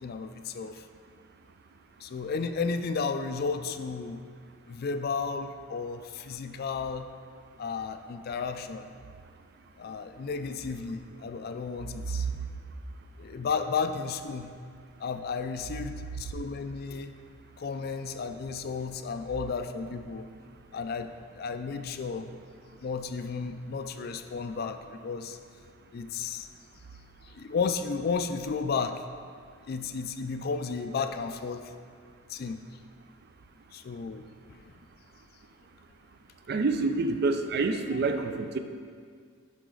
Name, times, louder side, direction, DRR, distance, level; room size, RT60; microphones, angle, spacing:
voice 1, 0.0-0.8 2.0-4.2 4.7-7.1 7.6-8.9 9.8-12.3 13.2-14.5 15.0-17.1 17.6-20.3 20.7-22.3 22.8-25.4 25.9-26.5 27.3-29.0 29.7-31.7 32.3-32.6 33.7-34.6, left 5 dB, 50° left, 8 dB, 0.4 m, -33 dB
voice 2, 36.5-38.6, right 3 dB, 50° right, 7 dB, 0.4 m, -27 dB
11.5 x 4.1 x 3.8 m, 2.1 s
head